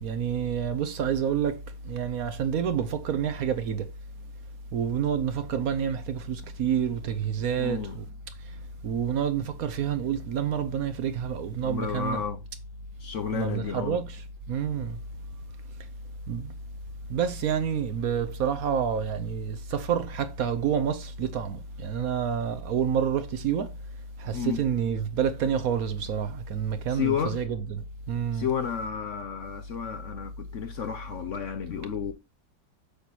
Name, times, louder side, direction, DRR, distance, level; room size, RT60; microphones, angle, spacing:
voice 1, 0.0-3.9 4.7-8.1 8.4-8.5 8.8-12.2 13.3-15.0 16.3-16.5 17.1-23.7 24.2-28.5, right 8 dB, 65° right, 1.0 m, -28 dB
voice 2, 7.6-8.0 11.6-12.4 13.0-14.0 24.3-24.6 26.9-27.4 28.3-32.1, left 7 dB, 60° left, 0.9 m, -31 dB
8.2 x 6.5 x 2.8 m
omnidirectional pair, 1.8 m